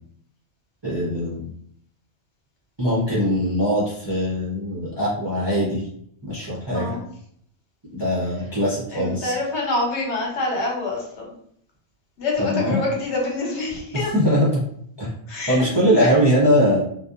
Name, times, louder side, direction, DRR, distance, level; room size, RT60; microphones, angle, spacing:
voice 1, 0.8-1.5 2.8-5.8 6.2-7.0 7.9-9.3 12.4-12.8 14.1-14.6 15.0-15.1 15.5-16.8, equal, 30° right, -8 dB, 0.5 m, -21 dB
voice 2, 8.9-11.3 12.2-14.1 15.3-15.7 16.0-16.2, left 2 dB, 75° left, -2 dB, 1.1 m, -26 dB
2.7 x 2.1 x 2.4 m, 0.68 s
omnidirectional pair, 1.2 m